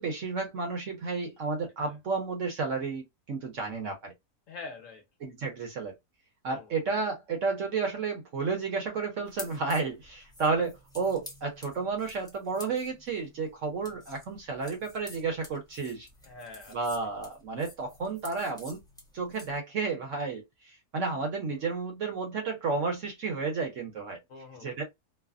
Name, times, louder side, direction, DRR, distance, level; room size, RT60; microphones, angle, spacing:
voice 1, 0.0-4.1 5.2-5.9 6.4-16.1 16.7-18.8 19.1-24.2 24.6-24.8, right 4 dB, 55° right, 1.0 m, -32 dB
voice 2, 4.5-5.0 6.5-6.7 16.2-16.8 24.3-24.8, left 3 dB, 60° left, 0.9 m, -45 dB
sound 1, 9.2-19.6, left 1 dB, 5° left, 0.4 m, -50 dB
3.2 x 2.1 x 2.3 m
omnidirectional pair, 1.8 m